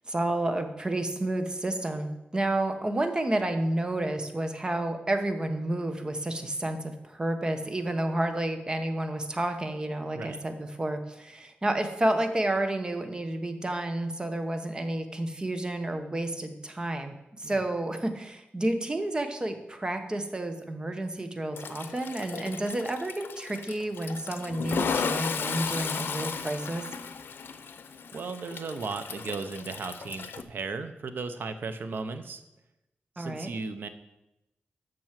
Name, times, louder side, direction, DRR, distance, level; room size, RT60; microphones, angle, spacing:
voice 1, 0.1-26.8 33.2-33.5, right 1 dB, 25° right, 7 dB, 1.0 m, -30 dB
Toilet flush, 21.6-30.4, left 6 dB, 85° left, 0.7 m, -35 dB
voice 2, 28.1-32.4 33.2-33.9, right 4 dB, 70° right, 9 dB, 0.8 m, -36 dB
7.6 x 6.2 x 7.4 m, 0.92 s
wide cardioid pair, 125°, 4 cm